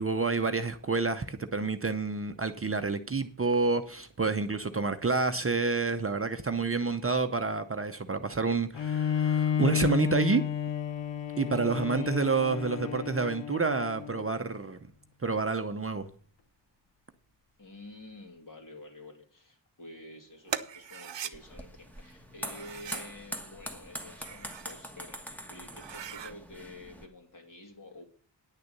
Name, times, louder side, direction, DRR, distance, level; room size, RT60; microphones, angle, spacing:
voice 1, 0.0-10.4 11.4-14.8 15.2-16.1, right 4 dB, 30° right, 0.7 m, -29 dB
Bowed string instrument, 8.7-14.4, left 8 dB, 75° left, 0.9 m, -31 dB
voice 2, 11.7-12.1 17.6-28.0, left 2 dB, 45° left, 2.9 m, -49 dB
sound 1, 20.5-21.3 22.4-23.1 24.0-24.8 25.2-25.3 25.7-26.3, right 9 dB, 75° right, 0.8 m, -40 dB
sound 2, 21.3-27.1, equal, 5° left, 1.3 m, -43 dB
10.0 x 6.7 x 6.7 m
wide cardioid pair, 115°, 44 cm